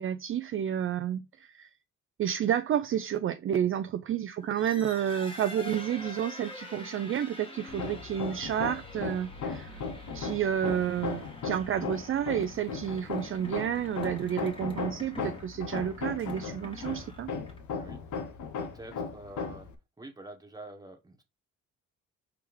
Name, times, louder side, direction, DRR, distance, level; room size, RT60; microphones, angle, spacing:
voice 1, 0.0-1.7 2.2-9.7 10.1-17.3, right 9 dB, 45° right, 0.4 m, -30 dB
sound 1, 4.4-17.8, left 2 dB, 15° left, 1.5 m, -47 dB
Hammer, 7.7-19.7, left 5 dB, 75° left, 0.9 m, -37 dB
voice 2, 18.6-19.7 20.0-21.2, right 1 dB, 15° right, 1.3 m, -47 dB
4.8 x 3.5 x 3.1 m
cardioid pair, 90°, 30 cm